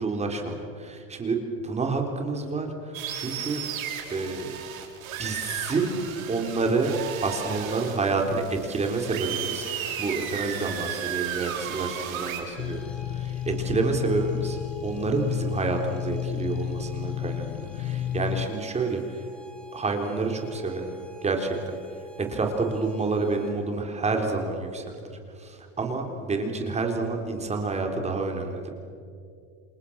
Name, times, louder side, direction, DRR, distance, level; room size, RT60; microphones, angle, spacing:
voice 1, 0.0-3.6 4.1-4.5 5.2-6.0 6.3-6.9 7.2-19.3 19.7-20.9 21.2-21.8 22.2-25.0 25.4-28.7, right 3 dB, 15° right, 3 dB, 3.6 m, -29 dB
sound 1, 2.9-12.4, right 9 dB, 80° right, 7.4 m, -34 dB
sound 2, 12.4-23.8, right 2 dB, ahead, 3.8 m, -50 dB
sound 3, 12.6-18.5, left 12 dB, 35° left, 0.7 m, -31 dB
28.5 x 28.0 x 7.3 m, 2.4 s
supercardioid pair, 135°, 40 cm